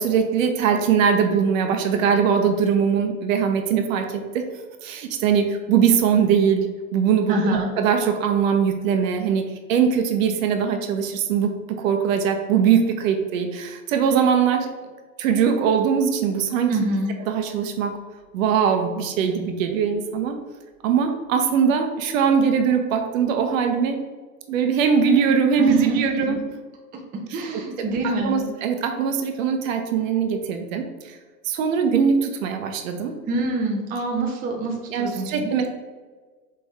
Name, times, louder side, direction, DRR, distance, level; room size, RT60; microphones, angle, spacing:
voice 1, 0.0-4.4 4.8-6.7 6.9-14.7 15.2-16.7 17.3-18.0 18.3-20.4 20.8-24.0 24.5-26.4 27.3-27.6 28.0-31.2 31.4-33.1 34.9-35.7, right 7 dB, 60° right, 5 dB, 0.8 m, -21 dB
voice 2, 7.3-7.7 16.7-17.1 25.6-26.0 27.3-28.4 33.3-35.5, right 2 dB, 20° right, 1 dB, 0.6 m, -25 dB
4.8 x 3.4 x 3.2 m, 1.4 s
hypercardioid pair, 110°, 45 cm